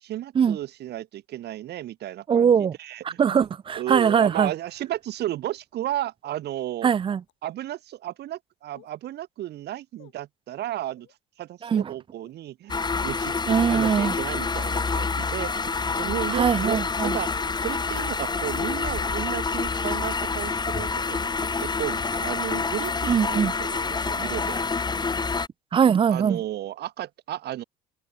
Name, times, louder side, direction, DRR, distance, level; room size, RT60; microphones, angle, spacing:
voice 1, 0.0-3.4 3.7-6.9 7.4-11.1 11.4-13.4 13.7-24.6 26.1-27.6, right 13 dB, 50° right, 1.1 m, -34 dB
voice 2, 2.3-2.7 3.0-4.5 6.8-7.2 11.6-11.9 13.5-14.1 16.3-17.2 23.1-23.5 25.7-26.4, right 7 dB, 25° right, 0.4 m, -21 dB
sound 1, 6.2-6.3 7.2-7.3 8.7-9.0 9.9-10.1 10.9-11.1 12.1-12.4 13.0-13.2 13.9-14.0 14.6-14.8 15.5-15.6 16.3-16.5 17.2-17.3 18.1-18.2 19.0-19.1 19.9-20.0 20.5-20.6, left 16 dB, 65° left, 6.0 m, -54 dB
sound 2, 12.7-25.5, left 4 dB, 20° left, 1.4 m, -27 dB
hypercardioid pair, 75°, 21 cm